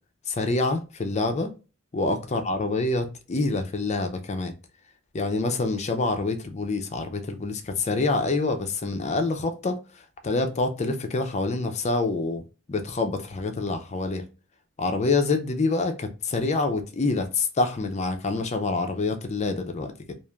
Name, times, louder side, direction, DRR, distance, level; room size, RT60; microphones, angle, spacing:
voice 1, 0.3-1.5 1.9-4.5 5.1-9.8 10.2-12.4 12.7-14.2 14.8-20.1, left 3 dB, 35° left, 6 dB, 0.4 m, -26 dB
3.2 x 2.4 x 2.2 m, 0.33 s
head